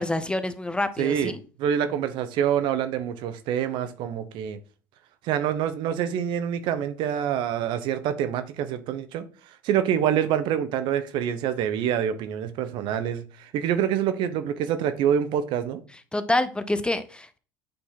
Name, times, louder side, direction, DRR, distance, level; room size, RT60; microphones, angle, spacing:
voice 1, 0.0-1.4 16.1-17.4, left 2 dB, 10° left, 0.7 m, -27 dB
voice 2, 1.0-1.3 1.6-4.6 5.2-9.2 9.6-15.8, right 9 dB, 65° right, 0.9 m, -26 dB
8.6 x 4.1 x 3.7 m
supercardioid pair, 85°, 9 cm